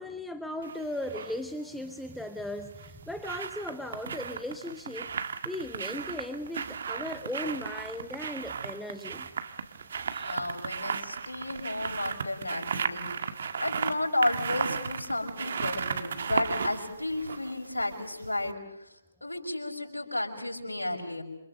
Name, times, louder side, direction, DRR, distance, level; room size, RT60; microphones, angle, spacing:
voice 1, 0.0-9.3 10.1-10.5, left 1 dB, ahead, 7 dB, 1.0 m, -37 dB
sound 1, 0.6-1.4 2.6-18.1 18.4-18.5, right 6 dB, 55° right, 1.8 m, -35 dB
voice 2, 10.2-18.6 19.2-21.2, left 2 dB, 80° left, 1 dB, 6.0 m, -32 dB
28.0 x 27.5 x 6.6 m, 0.92 s
figure-of-eight pair, 135°, 0 cm